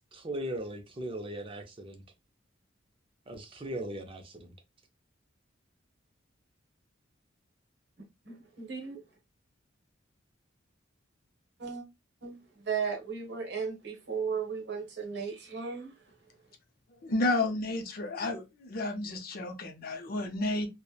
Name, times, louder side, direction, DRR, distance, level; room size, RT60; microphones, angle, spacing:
voice 1, 0.1-2.0 3.3-4.5, right 1 dB, 25° right, 0.4 m, -38 dB
voice 2, 8.2-9.0 11.6-11.8 12.2-16.0, right 6 dB, 60° right, 0.8 m, -35 dB
voice 3, 17.0-20.7, left 2 dB, 50° left, 0.5 m, -31 dB
2.9 x 2.1 x 2.3 m
head